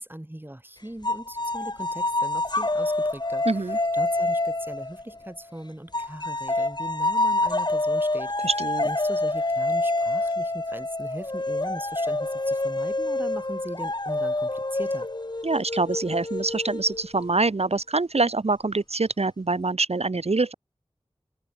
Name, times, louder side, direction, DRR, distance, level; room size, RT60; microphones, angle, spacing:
voice 1, 0.0-8.5 8.8-15.1, right 1 dB, 20° right, 7.6 m, -40 dB
sound 1, 1.0-5.4 5.9-17.3, left 2 dB, 40° left, 3.7 m, -27 dB
voice 2, 3.5-3.8 8.4-8.9 15.4-20.5, right 3 dB, 70° right, 2.7 m, -25 dB
open air
wide cardioid pair, 40°, 11 cm